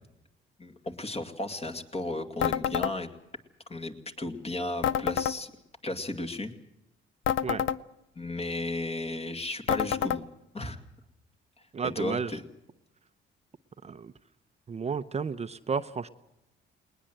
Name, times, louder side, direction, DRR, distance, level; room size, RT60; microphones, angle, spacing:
voice 1, 0.6-3.1 3.7-5.5 5.8-6.5 8.2-10.3 10.5-10.8 11.8-12.4, left 2 dB, 30° left, 6 dB, 2.4 m, -34 dB
sound 1, 2.4-2.9 4.8-5.4 7.2-7.8 9.7-10.2, left 9 dB, 75° left, 0.7 m, -27 dB
voice 2, 11.7-12.4 13.8-14.1 14.7-16.1, right 5 dB, 35° right, 10 dB, 0.7 m, -32 dB
20.5 x 19.5 x 7.8 m, 0.89 s
cardioid pair, 90°, 20 cm